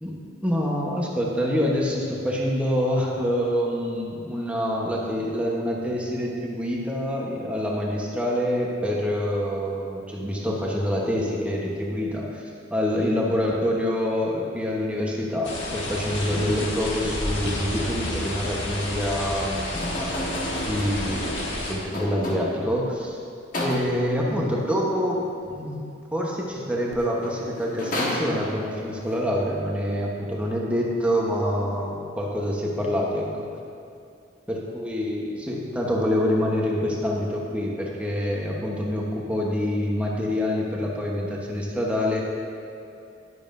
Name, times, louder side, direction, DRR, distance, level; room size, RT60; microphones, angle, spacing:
voice 1, 0.4-12.4 12.7-20.2 20.7-21.3 21.7-23.2 23.6-25.8 26.1-33.5 34.5-42.2, equal, 5° right, -3 dB, 1.1 m, -26 dB
sound 1, 15.4-21.7, left 1 dB, 70° left, 1.5 m, -31 dB
sound 2, 16.3-22.2 23.8-24.3 26.9-27.0, right 1 dB, 35° right, 0.7 m, -37 dB
sound 3, 19.7-22.7 23.5-24.2 26.8-26.9 27.2-28.8, left 1 dB, 45° left, 1.4 m, -32 dB
11.0 x 10.5 x 2.6 m, 2.6 s
head